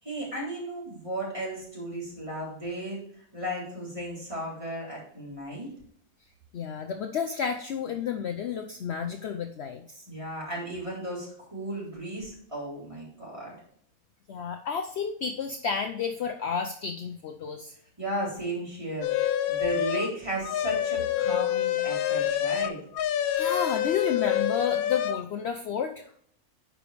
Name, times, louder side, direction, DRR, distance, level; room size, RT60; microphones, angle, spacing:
voice 1, 0.0-3.0 3.3-5.7 10.1-13.5 18.0-22.8, right 1 dB, 20° right, -6 dB, 3.7 m, -35 dB
voice 2, 6.5-10.0 14.3-17.7 23.3-26.1, left 6 dB, 60° left, 6 dB, 0.8 m, -31 dB
sound 1, 19.0-20.1 20.4-25.2, left 11 dB, 90° left, 1.1 m, -27 dB
9.8 x 5.0 x 3.3 m, 0.63 s
omnidirectional pair, 1.5 m